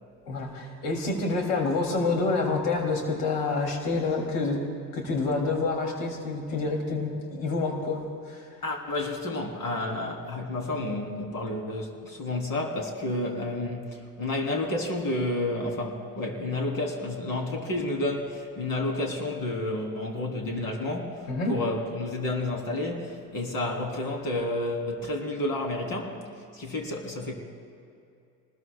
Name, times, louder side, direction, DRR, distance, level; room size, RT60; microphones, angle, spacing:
voice 1, 0.2-8.5 21.3-21.6, left 3 dB, 70° left, 2 dB, 3.3 m, -28 dB
voice 2, 8.6-26.2 26.5-27.3, left 2 dB, 45° left, 1 dB, 3.9 m, -30 dB
27.5 x 20.5 x 2.4 m, 2.5 s
hypercardioid pair, 70°, 48 cm